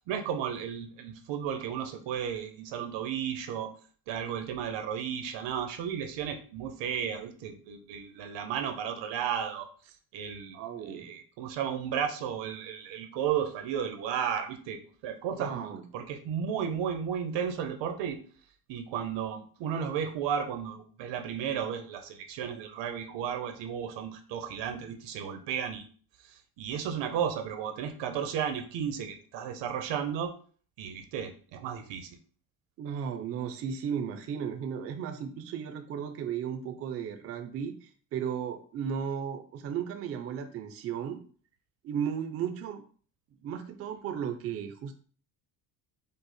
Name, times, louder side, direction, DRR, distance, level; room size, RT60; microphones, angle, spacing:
voice 1, 0.1-3.7 4.1-9.7 10.1-18.2 18.7-25.8 26.6-30.3 30.8-32.2, right 8 dB, 90° right, 6 dB, 0.9 m, -34 dB
voice 2, 10.5-11.1 15.4-15.8 32.8-41.2 41.8-42.8 43.4-44.9, right 8 dB, 35° right, 7 dB, 0.4 m, -35 dB
5.3 x 2.1 x 4.2 m, 0.43 s
cardioid pair, 175°, 42 cm